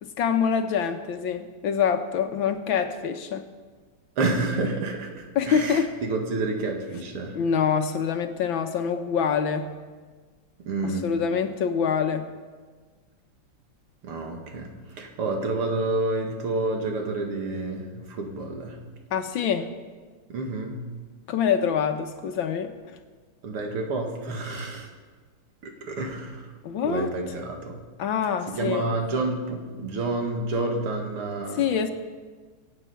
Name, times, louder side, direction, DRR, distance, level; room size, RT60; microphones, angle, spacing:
voice 1, 0.0-3.4 5.3-5.9 7.3-9.7 10.8-12.3 19.1-19.7 21.3-23.0 26.6-27.1 28.0-28.9 31.5-31.9, left 7 dB, 65° left, 7 dB, 1.6 m, -25 dB
voice 2, 4.2-7.4 10.7-11.1 14.0-18.8 20.3-20.8 23.4-24.9 25.6-26.5 26.8-27.8 28.5-31.7, right 2 dB, 80° right, 2 dB, 2.8 m, -29 dB
23.5 x 8.2 x 5.7 m, 1.4 s
omnidirectional pair, 2.4 m